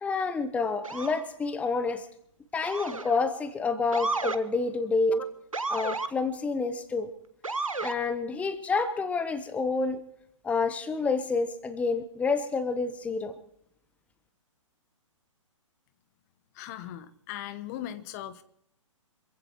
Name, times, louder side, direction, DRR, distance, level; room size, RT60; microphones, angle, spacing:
voice 1, 0.0-2.0 2.5-5.3 5.7-7.1 7.8-10.0 10.4-13.3, left 4 dB, 10° left, 12 dB, 1.0 m, -28 dB
Motor vehicle (road) / Siren, 0.8-1.2 2.6-3.2 3.9-4.4 5.5-6.1 7.4-8.0, right 3 dB, 90° right, 1.2 m, -32 dB
voice 2, 16.5-18.4, left 12 dB, 30° left, 13 dB, 1.0 m, -39 dB
26.5 x 15.5 x 3.0 m, 0.71 s
figure-of-eight pair, 125°, 17 cm